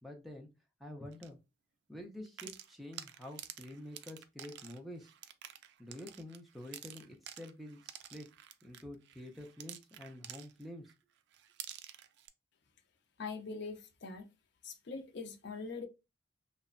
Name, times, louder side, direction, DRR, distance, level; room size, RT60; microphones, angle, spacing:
voice 1, 0.0-0.5 0.8-1.4 1.9-5.1 5.8-8.3 8.6-10.9, left 1 dB, ahead, 0.6 m, -48 dB
sound 1, 1.1-1.3 2.3-10.9 11.3-12.3, right 11 dB, 65° right, 0.3 m, -50 dB
voice 2, 13.2-14.3 14.6-15.9, left 4 dB, 65° left, 0.5 m, -42 dB
2.9 x 2.1 x 2.4 m
head